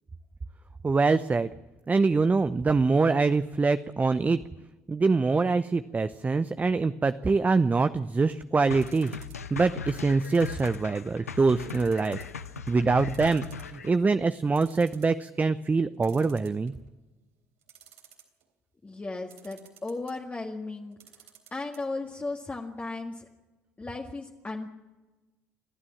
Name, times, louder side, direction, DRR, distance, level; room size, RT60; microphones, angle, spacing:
voice 1, 0.8-1.5 1.9-4.4 4.9-9.2 9.5-12.2 12.7-13.4 13.7-16.7, right 4 dB, 20° right, 12 dB, 0.7 m, -24 dB
sound 1, 8.7-13.9, left 6 dB, 85° left, 0.7 m, -39 dB
sound 2, 8.8-9.5 10.2-11.2 11.7-12.4 12.7-12.8 13.1-14.0 14.3-14.4 14.6-15.2 16.0-16.9 17.6-18.4 19.3-20.2 20.9-21.8 22.1-22.2 22.4-22.5, right 10 dB, 70° right, 3.5 m, -53 dB
voice 2, 18.8-21.0 21.5-23.3 23.8-24.7, left 3 dB, 20° left, 0 dB, 1.9 m, -35 dB
29.5 x 12.5 x 7.2 m, 1.2 s
figure-of-eight pair, 55°, 8 cm